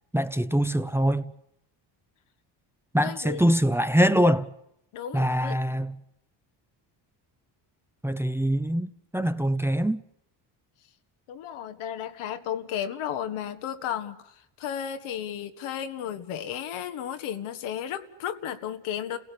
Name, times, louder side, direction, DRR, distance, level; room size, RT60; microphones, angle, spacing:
voice 1, 0.1-1.3 2.9-4.5 5.1-6.0 8.0-10.0, equal, 5° right, 0.9 m, -24 dB
voice 2, 3.0-3.4 4.9-5.6 11.3-14.3 14.6-19.2, left 9 dB, 80° left, 1.8 m, -33 dB
29.5 x 17.0 x 8.6 m
cardioid pair, 85°, 49 cm